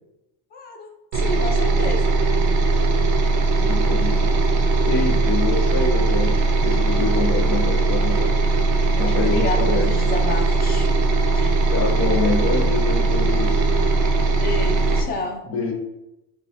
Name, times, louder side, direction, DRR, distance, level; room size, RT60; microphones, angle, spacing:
voice 1, 0.5-2.1 8.8-10.9 11.3-11.5 14.4-15.4, left 3 dB, 20° left, 3 dB, 0.5 m, -30 dB
sound 1, 1.1-15.0, right 3 dB, 45° right, 0.6 m, -19 dB
voice 2, 3.6-4.3 4.8-8.4 9.0-9.9 11.7-13.7 15.4-15.7, left 4 dB, 70° left, -1 dB, 1.3 m, -26 dB
5.2 x 2.4 x 2.7 m, 0.92 s
cardioid pair, 140°, 43 cm